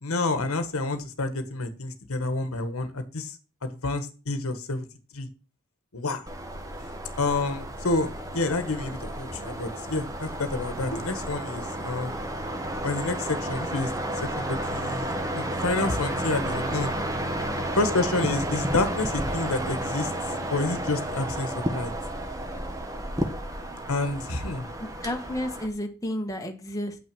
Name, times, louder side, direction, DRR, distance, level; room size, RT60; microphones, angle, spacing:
voice 1, 0.0-3.3 3.6-4.9 5.1-5.3 5.9-6.3 7.2-12.2 12.8-13.9 14.2-16.9 17.8-20.1 20.5-21.9 23.9-24.7, left 3 dB, 80° left, 9 dB, 1.3 m, -29 dB
sound 1, 6.3-25.7, right 1 dB, 15° right, 1.2 m, -32 dB
voice 2, 24.8-27.0, left 1 dB, 15° left, 2 dB, 1.3 m, -32 dB
8.1 x 6.0 x 6.2 m, 0.34 s
head